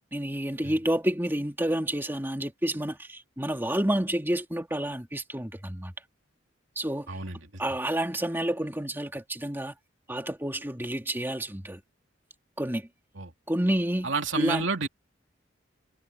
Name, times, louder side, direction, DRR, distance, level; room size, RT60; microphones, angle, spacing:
voice 1, 0.1-5.9 6.8-7.1 7.6-9.7 10.1-11.8 12.6-12.9 13.5-14.6, right 1 dB, 10° right, 2.2 m, -29 dB
voice 2, 7.1-7.4 13.2-13.3 14.0-14.9, right 3 dB, 70° right, 2.9 m, -29 dB
head